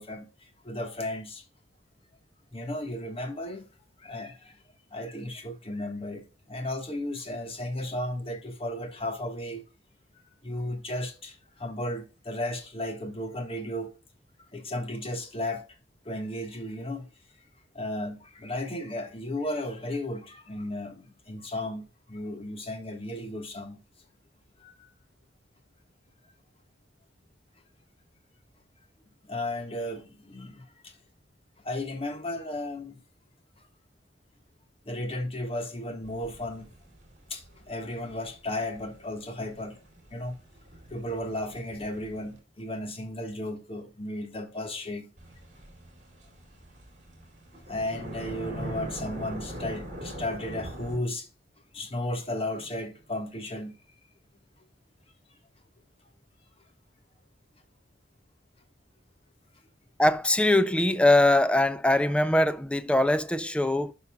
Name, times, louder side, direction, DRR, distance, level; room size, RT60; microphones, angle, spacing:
voice 1, 0.0-1.4 2.5-3.6 4.0-4.6 4.9-9.6 10.4-13.9 14.5-15.6 16.0-17.1 17.7-23.8 24.6-24.9 29.2-31.0 31.6-33.0 34.9-36.7 37.3-39.8 40.1-40.4 40.9-45.1 47.7-51.3 51.7-53.8, left 1 dB, 30° left, 1.5 m, -34 dB
sound 1, 36.0-42.4 45.2-51.0, right 1 dB, 40° right, 2.8 m, -42 dB
voice 2, 60.0-63.9, left 1 dB, 5° left, 0.4 m, -22 dB
11.5 x 5.5 x 2.3 m
head